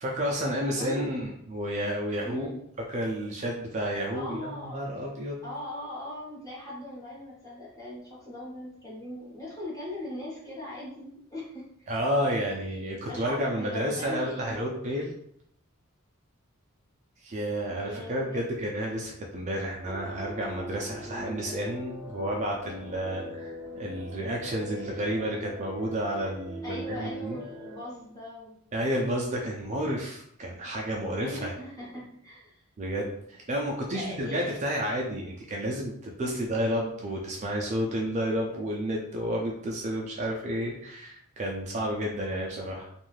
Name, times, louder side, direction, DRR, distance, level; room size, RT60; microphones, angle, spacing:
voice 1, 0.0-2.5 2.9-5.4 11.9-15.1 17.2-27.4 28.7-31.5 32.8-42.9, equal, 30° right, -1 dB, 0.3 m, -31 dB
voice 2, 0.7-1.1 2.2-2.6 4.1-4.8 5.4-11.7 13.1-14.8 17.7-18.5 21.0-21.6 26.6-28.6 31.2-32.6 33.9-34.6 36.2-36.6, left 1 dB, 15° left, -7 dB, 0.9 m, -40 dB
sound 1, 19.8-27.8, equal, 75° right, 0.6 m, -41 dB
2.5 x 2.3 x 3.1 m, 0.71 s
head